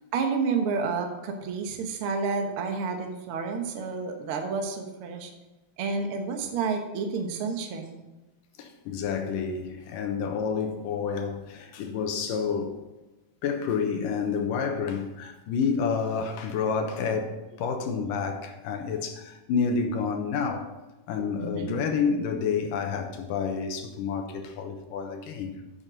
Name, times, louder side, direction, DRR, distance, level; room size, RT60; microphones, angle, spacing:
voice 1, 0.1-5.3 5.8-8.1 21.4-21.7, right 5 dB, 85° right, 1.2 m, -30 dB
voice 2, 8.6-12.9 13.4-20.7 21.1-25.6, left 6 dB, 70° left, 2.4 m, -29 dB
8.9 x 7.2 x 5.1 m
omnidirectional pair, 4.3 m